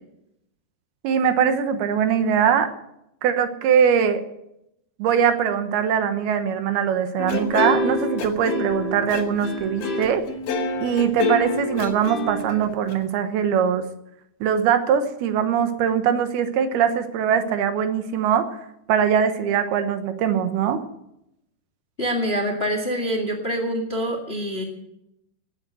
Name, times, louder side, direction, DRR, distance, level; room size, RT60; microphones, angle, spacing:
voice 1, 1.0-2.7 3.2-4.2 5.0-10.2 10.8-13.8 14.4-18.5 18.9-20.8, right 8 dB, 75° right, 8 dB, 3.0 m, -21 dB
sound 1, 7.2-12.9, left 2 dB, 55° left, 3.2 m, -26 dB
voice 2, 22.0-24.6, equal, 30° left, 3 dB, 1.2 m, -25 dB
18.5 x 8.9 x 7.6 m, 0.82 s
omnidirectional pair, 4.7 m